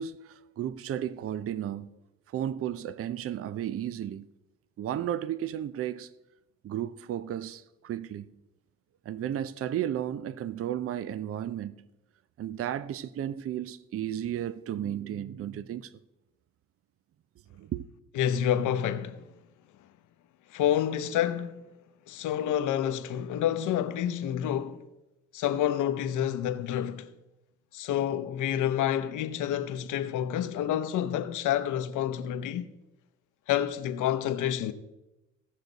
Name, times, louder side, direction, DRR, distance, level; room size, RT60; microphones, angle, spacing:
voice 1, 0.0-2.0 2.3-4.3 4.8-6.1 6.6-8.3 9.1-11.8 12.4-15.9 17.5-17.8, right 10 dB, 50° right, 0.5 m, -33 dB
voice 2, 18.2-19.3 20.5-21.6 22.1-24.8 25.3-27.1 27.7-32.7 33.5-34.7, left 10 dB, 80° left, 0.8 m, -28 dB
16.5 x 6.5 x 4.0 m
cardioid pair, 90°, 30 cm